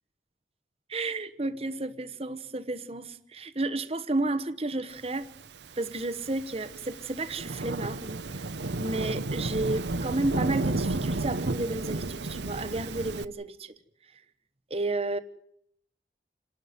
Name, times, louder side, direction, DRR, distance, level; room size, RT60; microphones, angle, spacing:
voice 1, 0.9-5.3 5.8-8.2 8.8-13.7 14.7-15.2, right 2 dB, 35° right, 1.1 m, -32 dB
Thunderstorm / Rain, 5.5-13.2, right 2 dB, 80° right, 0.9 m, -32 dB
28.0 x 12.0 x 9.5 m
head